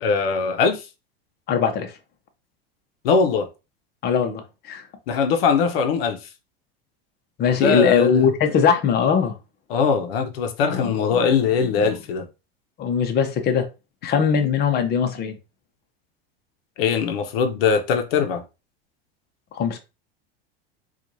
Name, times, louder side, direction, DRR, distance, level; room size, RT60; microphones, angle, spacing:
voice 1, 0.0-0.8 3.0-3.5 5.1-6.2 7.6-8.3 9.7-12.3 16.8-18.4, left 5 dB, 75° left, 0.7 m, -21 dB
voice 2, 1.5-1.9 4.0-4.8 7.4-9.3 10.7-11.3 11.6-12.0 12.8-13.7 14.0-15.3 19.5-19.8, left 6 dB, 35° left, 0.8 m, -21 dB
4.4 x 2.4 x 2.7 m
hypercardioid pair, 110°, 30 cm